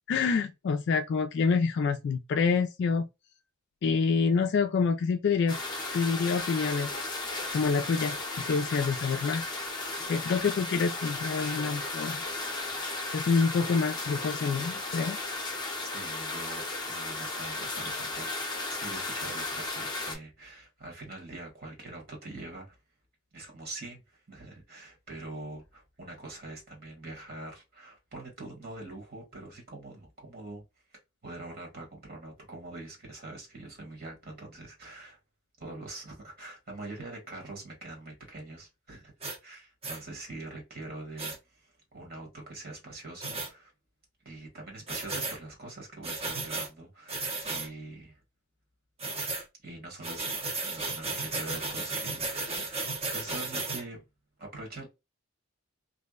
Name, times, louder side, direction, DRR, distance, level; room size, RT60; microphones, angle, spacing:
voice 1, 0.1-3.1 3.8-5.6 5.9-6.9 7.5-9.4 10.1-12.2 13.1-15.2, left 5 dB, 55° left, 0.3 m, -27 dB
sound 1, 5.5-20.2, left 2 dB, 20° left, 0.7 m, -35 dB
voice 2, 15.8-22.8 23.3-30.6 30.9-35.2 35.6-39.1 39.4-43.7 44.2-48.2 49.6-50.3 50.6-54.0 54.4-54.9, right 2 dB, 45° right, 1.2 m, -44 dB
sound 2, 39.2-39.4 39.8-40.0 41.2-41.4 43.2-43.5 44.9-45.4 46.0-46.7 47.1-47.7 49.0-49.4 50.0-53.8, right 3 dB, 30° right, 0.7 m, -34 dB
2.6 x 2.1 x 2.2 m
head